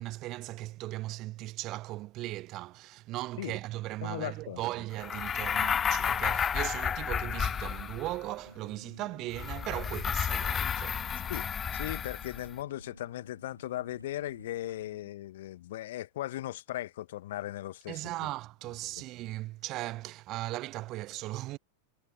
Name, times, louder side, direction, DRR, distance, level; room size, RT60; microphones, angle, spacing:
voice 1, 0.0-11.1 17.9-21.6, right 17 dB, 35° right, 0.8 m, -38 dB
voice 2, 4.0-4.6 11.3-11.5 11.7-18.0, left 14 dB, 55° left, 1.5 m, -38 dB
sound 1, 5.0-8.2 9.3-12.5, left 7 dB, 20° left, 0.6 m, -31 dB
Engine, 8.5-14.9, equal, 90° left, 1.6 m, -54 dB
figure-of-eight pair, 90°, 0 cm